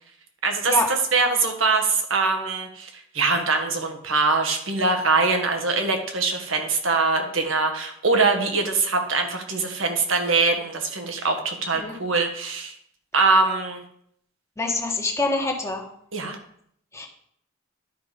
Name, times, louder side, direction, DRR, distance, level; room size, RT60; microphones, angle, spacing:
voice 1, 0.4-2.9 3.1-12.7 13.1-13.8 16.1-16.4, right 3 dB, 75° right, 5 dB, 1.6 m, -23 dB
voice 2, 14.6-15.8 16.9-17.1, left 2 dB, 15° left, 1 dB, 1.4 m, -25 dB
11.0 x 5.1 x 5.2 m, 0.67 s
head